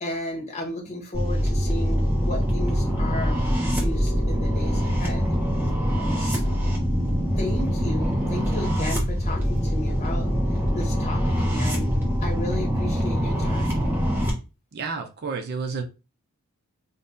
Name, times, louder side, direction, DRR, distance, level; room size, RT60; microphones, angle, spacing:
voice 1, 0.0-5.3 6.2-6.7 7.4-10.3 10.7-11.9 12.2-13.8, left 1 dB, 30° left, 0 dB, 1.0 m, -34 dB
sound 1, 1.1-14.3, equal, 10° right, 0.8 m, -24 dB
voice 2, 14.7-15.8, right 4 dB, 45° right, 5 dB, 0.5 m, -30 dB
2.6 x 2.1 x 3.6 m, 0.29 s
head